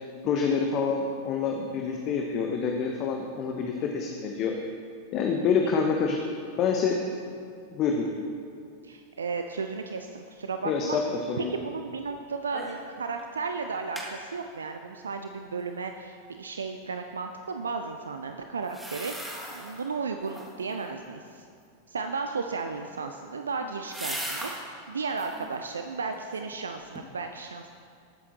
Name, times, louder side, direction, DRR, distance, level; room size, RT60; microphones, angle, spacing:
voice 1, 0.2-4.6 5.1-6.2 6.6-7.0 7.3-7.4 7.7-8.1 10.6-11.5, left 5 dB, 35° left, 2 dB, 1.0 m, -27 dB
voice 2, 8.8-11.0 11.4-21.4 21.9-27.7, right 4 dB, 70° right, 6 dB, 0.5 m, -34 dB
sound 1, 12.5-12.9 13.2-13.3 13.6-14.1 18.6-19.8 20.2-20.7 22.7-24.7 25.1-25.5 26.0-26.6 27.0-27.1, right 1 dB, 5° right, 1.9 m, -39 dB
19.5 x 8.2 x 3.0 m, 2.3 s
figure-of-eight pair, 90°, 0 cm